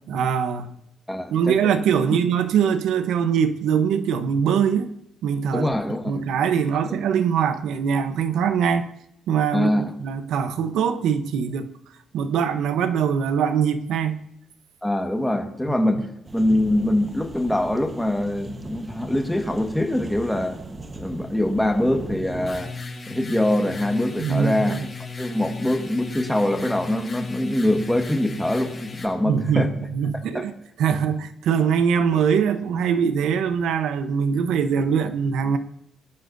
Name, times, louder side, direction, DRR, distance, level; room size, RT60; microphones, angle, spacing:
voice 1, 0.1-0.7 1.3-4.9 5.2-5.7 6.1-8.9 9.3-11.7 12.1-14.2 24.2-24.8 29.3-30.5 30.8-35.6, right 7 dB, 80° right, 10 dB, 0.9 m, -22 dB
voice 2, 1.1-1.8 2.1-2.2 5.5-6.3 6.9-7.0 9.5-9.9 14.8-20.6 21.0-22.8 23.1-24.9 25.2-29.7 30.1-30.5, left 1 dB, 5° left, 4 dB, 1.6 m, -24 dB
sound 1, 16.3-22.6, right 2 dB, 30° right, 1.2 m, -38 dB
sound 2, 22.4-29.1, left 4 dB, 30° left, 4.4 m, -36 dB
21.0 x 11.5 x 2.7 m, 0.78 s
cardioid pair, 90°, 0 cm